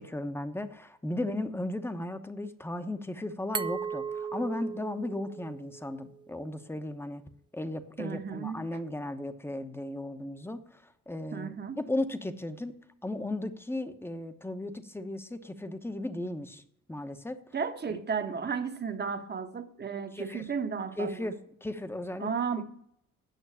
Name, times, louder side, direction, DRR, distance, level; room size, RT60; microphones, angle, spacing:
voice 1, 0.0-7.2 7.5-12.7 13.0-16.6 16.9-17.4 17.9-18.0 20.1-20.5 21.0-22.3, left 1 dB, 10° left, 9 dB, 1.0 m, -36 dB
Glass, 3.5-6.3, right 6 dB, 15° right, 0.3 m, -37 dB
voice 2, 8.0-8.6 11.3-11.8 17.5-21.3 22.2-22.6, right 6 dB, 35° right, 8 dB, 1.2 m, -34 dB
9.4 x 6.3 x 8.5 m, 0.73 s
cardioid pair, 90°, 30 cm